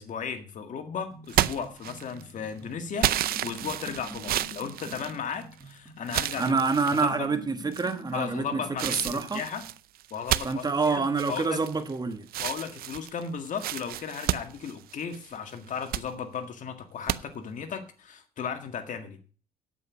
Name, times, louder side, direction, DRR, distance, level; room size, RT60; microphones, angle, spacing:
voice 1, 0.0-6.6 7.0-7.3 8.1-9.6 10.1-11.6 12.4-19.2, left 6 dB, 50° left, 1.8 m, -35 dB
sound 1, 1.1-9.6, equal, ahead, 7.2 m, -47 dB
sound 2, 1.3-2.3 3.0-5.6 6.1-7.1 7.7-8.2 8.8-11.9 12.3-15.3 15.7-16.1 17.1-17.2, right 13 dB, 60° right, 0.6 m, -31 dB
voice 2, 6.4-9.4 10.4-12.3, right 4 dB, 25° right, 1.3 m, -27 dB
9.0 x 8.5 x 6.3 m
cardioid pair, 110°, 17 cm